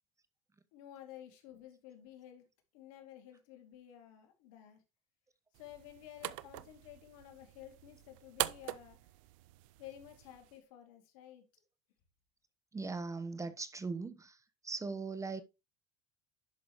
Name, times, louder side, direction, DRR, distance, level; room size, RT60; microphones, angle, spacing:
voice 1, 0.7-2.4 2.7-4.8 5.5-9.0 9.8-11.6, left 11 dB, 80° left, 2.5 m, -53 dB
sound 1, 5.5-10.6, right 19 dB, 80° right, 0.5 m, -43 dB
voice 2, 12.7-15.4, right 4 dB, 20° right, 0.9 m, -40 dB
10.5 x 6.1 x 3.0 m
supercardioid pair, 85°, 17 cm